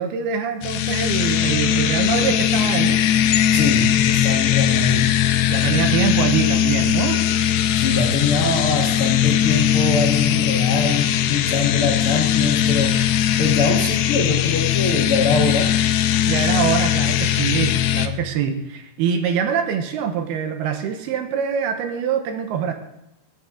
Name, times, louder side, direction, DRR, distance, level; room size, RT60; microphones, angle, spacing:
voice 1, 0.0-3.0 5.5-7.2 16.3-22.7, right 7 dB, 75° right, 6 dB, 2.8 m, -24 dB
sound 1, 0.6-18.1, left 10 dB, 80° left, 2.5 m, -19 dB
voice 2, 3.5-5.1 7.7-12.9 13.4-15.7, left 4 dB, 50° left, -1 dB, 1.7 m, -23 dB
22.5 x 8.8 x 3.7 m, 0.84 s
omnidirectional pair, 4.7 m